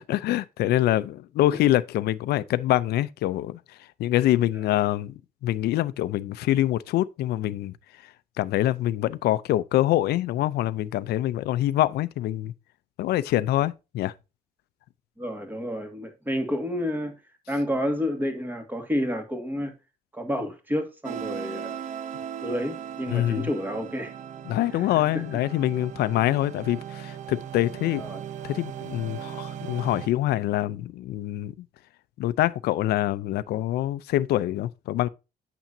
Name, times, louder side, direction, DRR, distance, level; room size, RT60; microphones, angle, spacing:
voice 1, 0.0-3.6 4.0-7.7 8.4-12.5 13.0-14.1 23.1-23.5 24.5-28.0 28.4-31.5 32.2-35.1, left 14 dB, 70° left, 0.6 m, -25 dB
voice 2, 15.2-17.1 17.5-19.7 20.1-21.9 22.4-24.1 24.7-25.2 28.0-28.2, equal, 10° right, 1.9 m, -30 dB
sound 1, 21.0-30.1, right 9 dB, 45° right, 0.7 m, -38 dB
8.9 x 7.0 x 2.7 m
cardioid pair, 110°, 17 cm